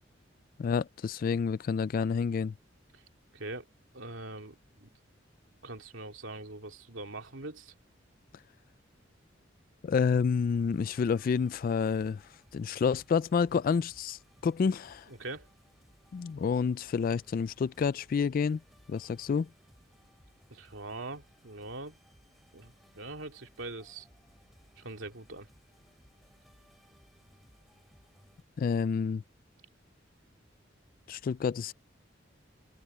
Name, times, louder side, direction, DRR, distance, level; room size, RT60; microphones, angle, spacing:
voice 1, 0.6-2.5 9.8-12.2 12.5-15.1 16.1-18.6 18.9-19.5 28.6-29.2 31.1-31.7, left 6 dB, 50° left, 0.3 m, -29 dB
voice 2, 3.3-3.7 3.9-4.9 5.6-7.7 15.1-15.5 20.5-22.0 22.5-24.1 24.8-25.5, right 2 dB, 90° right, 2.7 m, -42 dB
sound 1, 10.2-28.4, equal, ahead, 5.3 m, -63 dB
head